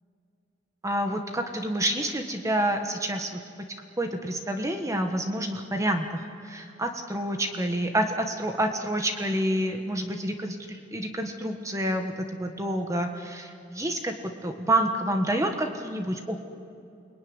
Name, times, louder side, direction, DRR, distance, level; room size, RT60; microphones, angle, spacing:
voice 1, 0.8-3.4 4.0-16.4, right 1 dB, 15° right, 5 dB, 1.5 m, -28 dB
28.5 x 20.5 x 9.7 m, 2.5 s
head